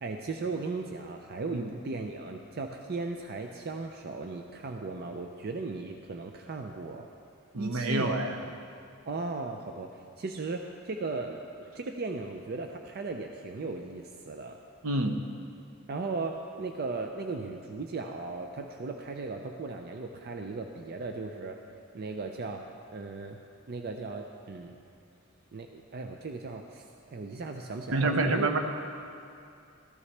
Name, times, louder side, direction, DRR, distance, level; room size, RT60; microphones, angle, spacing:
voice 1, 0.0-7.1 7.6-8.2 9.1-14.6 15.9-21.6 21.9-22.6 22.9-23.4 23.7-24.8 25.5-28.5, right 3 dB, 45° right, 4 dB, 0.5 m, -37 dB
voice 2, 7.5-8.3 14.8-15.2 27.9-28.6, right 2 dB, 75° right, 5 dB, 0.9 m, -27 dB
13.5 x 12.5 x 3.3 m, 2.4 s
head